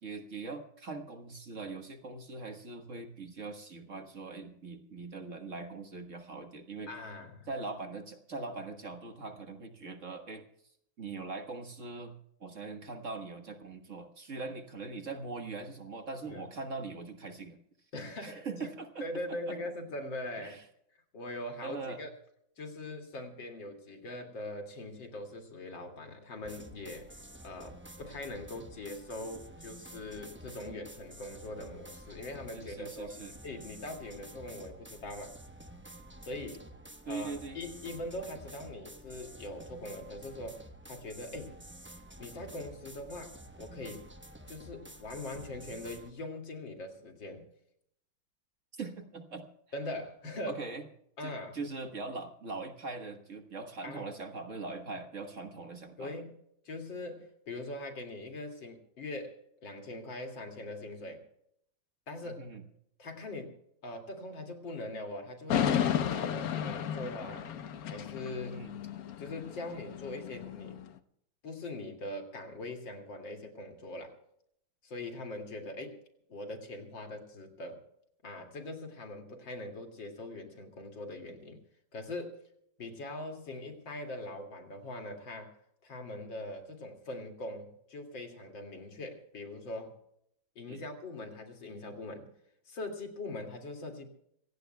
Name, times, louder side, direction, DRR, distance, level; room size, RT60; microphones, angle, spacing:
voice 1, 0.0-6.9 7.5-10.4 11.0-12.1 12.4-17.6 18.2-19.6 20.4-20.6 21.6-22.0 32.5-33.3 37.1-37.6 48.7-49.4 50.5-50.9 51.2-56.1 62.2-62.6 68.3-68.7 90.7-90.8, right 3 dB, 45° right, 5 dB, 1.6 m, -41 dB
voice 2, 6.9-7.5 16.3-16.5 17.9-18.4 19.0-20.6 21.1-22.1 22.6-27.1 27.4-35.3 36.3-36.6 37.1-40.6 40.9-41.5 42.2-44.0 44.5-47.4 49.7-50.6 51.2-51.6 53.8-54.1 56.0-56.3 56.6-61.2 62.1-62.4 63.0-63.5 63.8-65.7 66.1-67.5 67.9-68.5 69.2-70.8 71.4-74.1 74.8-76.0 76.3-77.8 78.2-81.6 81.9-82.4 82.8-85.5 85.8-90.0 90.6-92.3 92.7-94.1, left 2 dB, 75° left, 3 dB, 3.0 m, -42 dB
sound 1, 26.4-46.1, right 1 dB, 15° right, 0.5 m, -50 dB
sound 2, 65.5-70.8, left 9 dB, 60° left, 1.1 m, -33 dB
26.0 x 17.0 x 2.2 m, 0.74 s
omnidirectional pair, 2.0 m